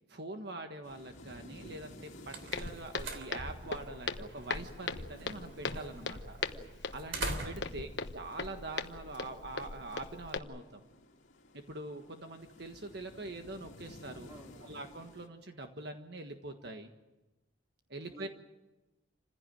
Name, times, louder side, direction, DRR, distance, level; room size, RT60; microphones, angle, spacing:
voice 1, 0.1-6.4 6.9-7.9 8.1-10.8 11.5-14.3 14.6-16.9 17.9-18.3, right 2 dB, 60° right, 5 dB, 1.5 m, -44 dB
sound 1, 0.8-15.3, left 1 dB, 85° left, 2.3 m, -55 dB
sound 2, 1.8-9.3, right 2 dB, 75° right, 3.2 m, -45 dB
Walk footsteps, 2.5-10.4, left 4 dB, 65° left, 1.1 m, -39 dB
voice 2, 6.4-6.8 14.3-14.8 18.0-18.3, right 1 dB, 20° right, 2 dB, 2.6 m, -55 dB
28.0 x 16.0 x 9.2 m, 1.1 s
head